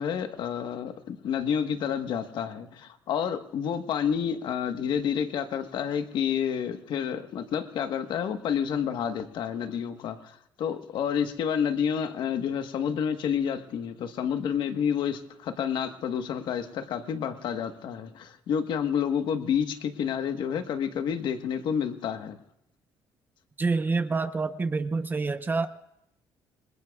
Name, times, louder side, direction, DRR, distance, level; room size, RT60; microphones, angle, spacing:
voice 1, 0.0-22.4, left 8 dB, 70° left, 1.4 m, -29 dB
voice 2, 23.6-25.7, right 4 dB, 25° right, 0.8 m, -27 dB
27.0 x 21.0 x 2.4 m
cardioid pair, 105°, 8 cm